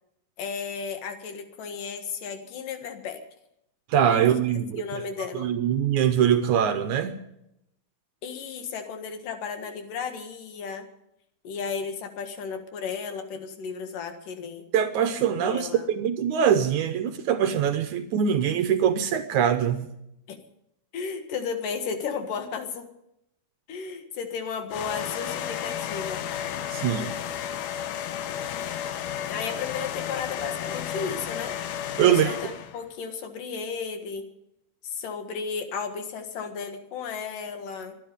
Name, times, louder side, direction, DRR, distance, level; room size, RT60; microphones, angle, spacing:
voice 1, 0.4-3.2 4.1-4.3 4.8-5.5 8.2-10.9 11.4-14.6 15.4-15.9 20.3-20.4 20.9-22.9 23.7-26.3 29.3-31.5 32.0-34.3 34.8-38.0, left 6 dB, 65° left, 3.1 m, -34 dB
voice 2, 3.9-4.8 5.3-7.2 14.7-19.9 26.7-27.1 32.0-32.4, right 9 dB, 70° right, 1.9 m, -23 dB
sound 1, 24.7-32.8, left 9 dB, 85° left, 3.0 m, -32 dB
24.5 x 10.5 x 5.2 m
omnidirectional pair, 4.3 m